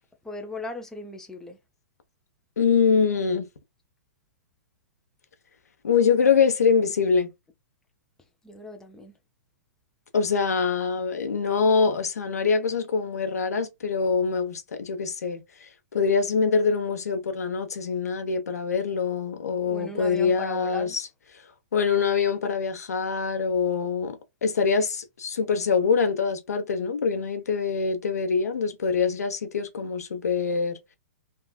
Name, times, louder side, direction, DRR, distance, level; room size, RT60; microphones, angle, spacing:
voice 1, 0.2-1.6 8.4-9.1 19.7-21.0, left 3 dB, 5° left, 0.6 m, -37 dB
voice 2, 2.6-3.5 5.8-7.3 10.1-21.1 21.7-30.8, left 5 dB, 90° left, 0.9 m, -24 dB
3.5 x 2.4 x 2.3 m
hypercardioid pair, 135°, 8 cm